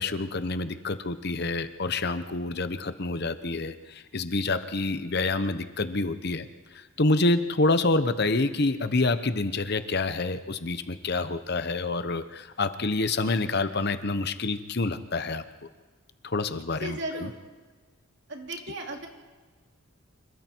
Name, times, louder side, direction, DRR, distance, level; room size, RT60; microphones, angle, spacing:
voice 1, 0.0-6.5 6.7-15.4 16.2-17.3, left 2 dB, 50° left, 11 dB, 1.0 m, -27 dB
voice 2, 16.8-17.4 18.3-19.1, right 1 dB, 55° right, 1 dB, 3.1 m, -35 dB
27.0 x 23.0 x 4.6 m, 1.4 s
head